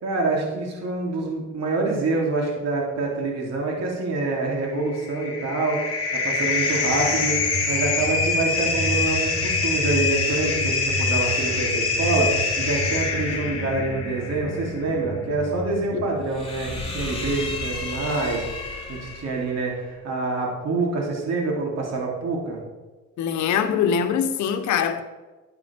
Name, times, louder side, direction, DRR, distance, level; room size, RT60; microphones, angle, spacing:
voice 1, 0.0-5.8 6.1-7.3 7.7-22.6, right 3 dB, 60° right, 3.3 m, -26 dB
sound 1, 4.7-19.3, left 3 dB, 20° left, 3.1 m, -26 dB
voice 2, 23.2-25.0, left 7 dB, 80° left, 1.1 m, -23 dB
11.0 x 10.5 x 3.6 m
cardioid pair, 95°, 29 cm